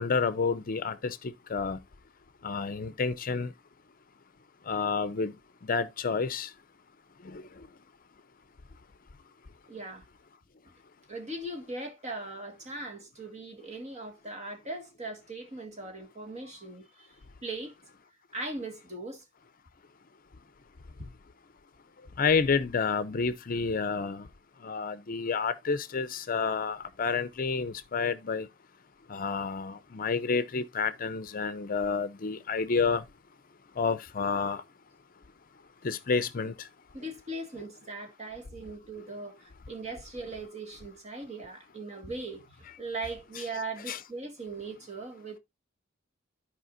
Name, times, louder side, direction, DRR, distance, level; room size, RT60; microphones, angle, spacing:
voice 1, 0.0-1.8 2.4-3.5 4.7-5.3 5.6-6.5 7.2-7.4 22.2-24.3 24.6-28.5 29.1-33.0 33.8-34.6 35.8-36.5 43.9-44.0, left 5 dB, 45° left, 0.6 m, -29 dB
voice 2, 9.7-10.0 11.1-17.1 17.4-17.8 18.3-19.2 21.0-21.1 36.9-45.4, right 2 dB, 35° right, 1.9 m, -39 dB
14.0 x 4.9 x 2.5 m
head